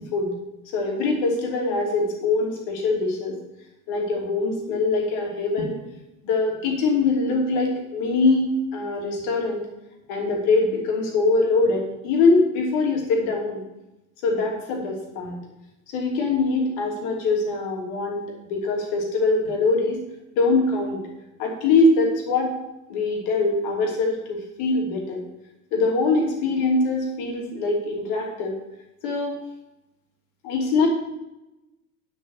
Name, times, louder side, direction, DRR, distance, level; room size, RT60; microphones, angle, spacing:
voice 1, 0.7-3.4 3.9-5.7 6.2-9.6 10.1-13.6 14.2-15.4 15.9-20.0 20.3-21.0 21.4-22.5 22.9-25.2 25.7-28.5 29.0-29.4 30.4-30.9, left 3 dB, 50° left, 0 dB, 3.0 m, -23 dB
9.7 x 6.8 x 5.8 m, 0.95 s
figure-of-eight pair, 70°, 43 cm